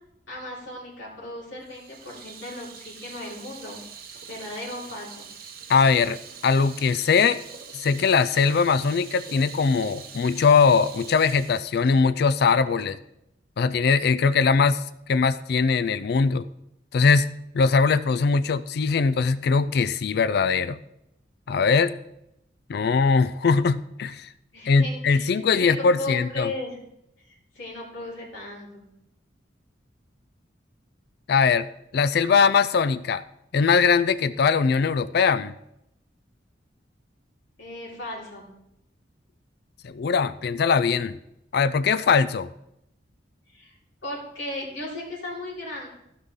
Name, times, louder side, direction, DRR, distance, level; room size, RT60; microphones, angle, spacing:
voice 1, 0.3-3.8 4.3-5.2 24.5-26.8 27.5-28.9 37.6-38.4 43.5-43.7 44.0-45.9, left 2 dB, 90° left, -5 dB, 4.3 m, -36 dB
Water tap faucet / Sink (filling or washing), 1.7-13.0, right 6 dB, 50° right, 1.0 m, -44 dB
voice 2, 5.7-7.4 7.7-13.0 13.6-14.8 15.1-16.5 16.9-17.3 17.5-20.8 21.5-22.0 22.7-24.3 24.6-26.5 31.3-31.7 31.9-33.2 33.5-35.5 39.8-41.2 41.5-42.5, left 5 dB, 60° left, 14 dB, 0.4 m, -21 dB
16.0 x 5.7 x 3.8 m, 0.81 s
head